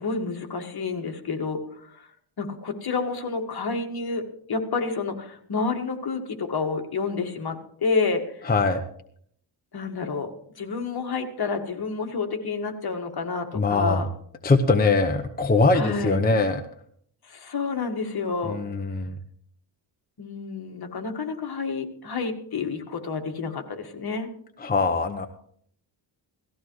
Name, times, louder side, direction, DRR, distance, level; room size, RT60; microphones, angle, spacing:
voice 1, 0.0-2.1 2.4-8.5 9.7-14.1 15.7-16.2 17.2-18.6 20.2-24.3, left 4 dB, 50° left, 4 dB, 1.8 m, -29 dB
voice 2, 8.5-8.8 13.5-14.1 14.4-16.6 18.4-19.2 24.6-25.3, left 3 dB, 20° left, 5 dB, 0.8 m, -22 dB
18.0 x 14.5 x 3.1 m, 0.64 s
wide cardioid pair, 120°, 48 cm